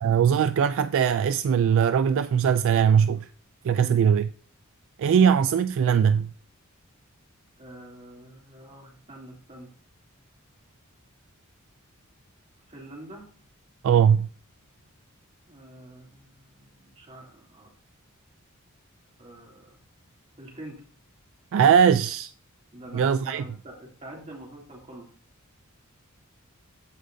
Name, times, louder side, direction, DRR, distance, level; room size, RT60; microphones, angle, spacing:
voice 1, 0.0-3.3 3.6-4.3 5.0-6.3 13.8-14.3 21.5-22.3 22.9-23.4, right 7 dB, 60° right, 0.3 m, -20 dB
voice 2, 3.8-4.2 7.6-9.7 12.7-13.3 15.5-17.7 19.2-19.8 20.4-20.8 22.7-25.1, right 1 dB, 30° right, 2.6 m, -45 dB
14.5 x 5.0 x 2.6 m
head